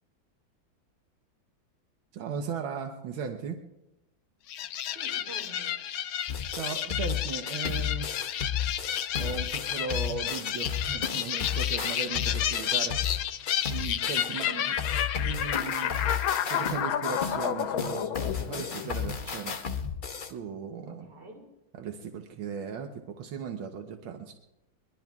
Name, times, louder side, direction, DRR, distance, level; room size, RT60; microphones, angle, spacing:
voice 1, 2.1-3.6 6.5-8.1 9.2-13.0 13.7-14.8 15.2-15.9 16.5-19.6 20.3-21.1 21.8-24.3, right 5 dB, 90° right, 4 dB, 1.8 m, -37 dB
sound 1, 4.5-19.1, left 10 dB, 90° left, 1.6 m, -31 dB
voice 2, 4.9-5.8 14.2-15.0 20.9-21.5, right 3 dB, 55° right, 1 dB, 3.9 m, -47 dB
sound 2, 6.3-14.4 14.8-20.3, left 7 dB, 65° left, 0.5 m, -33 dB
22.5 x 22.5 x 2.4 m, 0.93 s
omnidirectional pair, 2.1 m